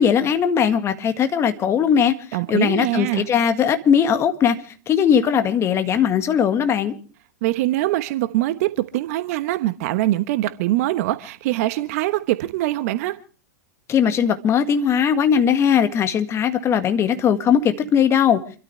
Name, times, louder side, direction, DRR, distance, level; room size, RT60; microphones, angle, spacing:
voice 1, 0.0-2.1 2.5-4.6 4.9-6.9 13.9-18.4, left 8 dB, 25° left, 1.7 m, -19 dB
voice 2, 2.3-3.3 7.4-13.2, right 16 dB, 55° right, 1.1 m, -23 dB
28.0 x 13.0 x 3.3 m
hypercardioid pair, 100°, 10 cm